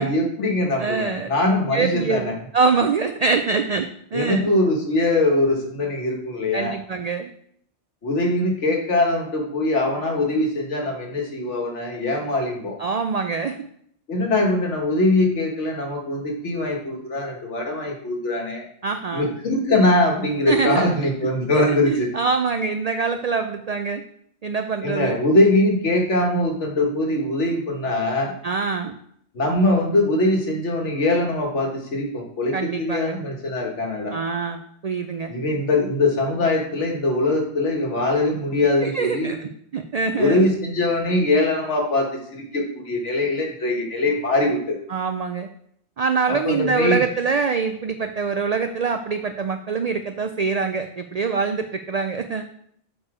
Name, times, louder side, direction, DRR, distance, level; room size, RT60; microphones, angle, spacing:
voice 1, 0.0-2.4 4.1-6.8 8.0-12.8 14.1-18.7 19.1-22.1 24.8-28.4 29.3-34.2 35.3-39.3 40.2-44.8 46.3-47.0, left 2 dB, 75° left, 1 dB, 1.7 m, -22 dB
voice 2, 0.8-1.3 1.7-4.5 6.5-7.3 12.8-13.7 18.8-19.3 20.5-24.0 24.4-25.2 28.4-29.0 32.5-33.2 34.1-35.3 38.8-40.5 44.9-45.5 46.0-52.4, right 5 dB, 80° right, 7 dB, 0.3 m, -24 dB
6.7 x 4.9 x 4.8 m, 0.68 s
omnidirectional pair, 1.2 m